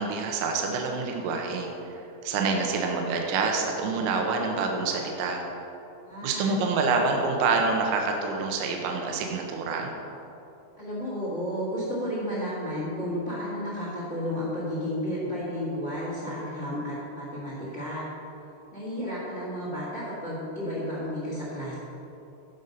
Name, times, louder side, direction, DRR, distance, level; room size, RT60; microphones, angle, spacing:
voice 1, 0.0-5.4 6.2-9.9, right 4 dB, 85° right, 2 dB, 3.0 m, -27 dB
voice 2, 6.1-6.6 10.8-18.0 18.7-21.7, equal, 40° left, -6 dB, 1.0 m, -32 dB
14.0 x 5.4 x 5.3 m, 2.9 s
omnidirectional pair, 5.1 m